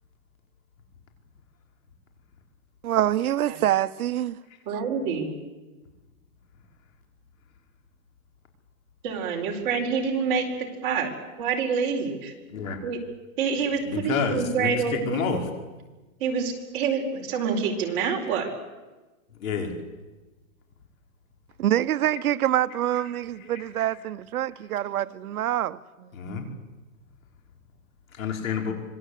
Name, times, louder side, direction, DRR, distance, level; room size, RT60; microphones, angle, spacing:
voice 1, 2.8-4.4 21.6-26.1, right 12 dB, 75° right, 1.0 m, -25 dB
voice 2, 4.7-5.4 9.0-11.1 11.4-12.3 12.8-13.0 13.4-15.4 16.2-18.5, right 6 dB, 35° right, 4.7 m, -27 dB
voice 3, 13.8-15.4 19.4-19.7 23.0-23.1 23.5-23.6 26.1-26.4 28.2-28.7, left 6 dB, 65° left, 5.4 m, -29 dB
26.0 x 21.5 x 8.4 m
supercardioid pair, 170°, 43 cm